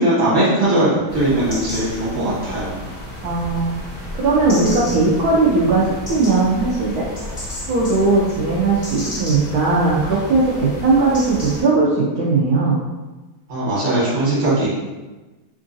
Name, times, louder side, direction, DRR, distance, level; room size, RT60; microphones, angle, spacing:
voice 1, 0.0-2.7 13.5-14.7, right 1 dB, 40° right, -8 dB, 1.4 m, -19 dB
sound 1, 1.1-11.6, left 1 dB, 35° left, 0.5 m, -32 dB
voice 2, 3.2-3.8 4.2-7.0 7.7-12.8, right 3 dB, 80° right, -5 dB, 0.8 m, -18 dB
3.7 x 2.5 x 2.6 m, 1.2 s
omnidirectional pair, 2.3 m